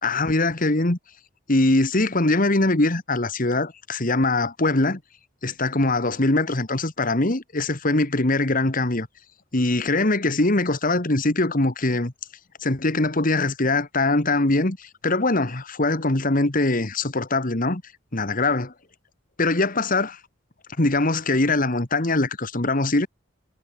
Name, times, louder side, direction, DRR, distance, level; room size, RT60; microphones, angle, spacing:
voice 1, 0.0-1.0 1.5-5.0 5.4-9.1 9.5-12.1 12.6-17.8 18.1-18.7 19.4-20.2 20.8-23.1, left 2 dB, 45° left, 1.9 m, -22 dB
head